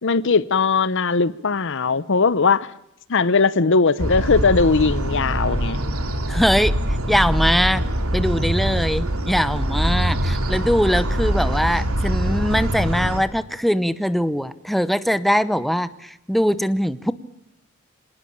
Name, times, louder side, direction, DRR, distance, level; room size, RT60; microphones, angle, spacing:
voice 1, 0.0-2.7 3.1-5.8, left 4 dB, 60° left, 0.8 m, -19 dB
sound 1, 4.0-13.2, right 1 dB, 80° right, 3.1 m, -23 dB
voice 2, 6.3-6.7 7.1-7.8 8.1-17.1, equal, ahead, 0.8 m, -21 dB
26.5 x 19.0 x 8.7 m
head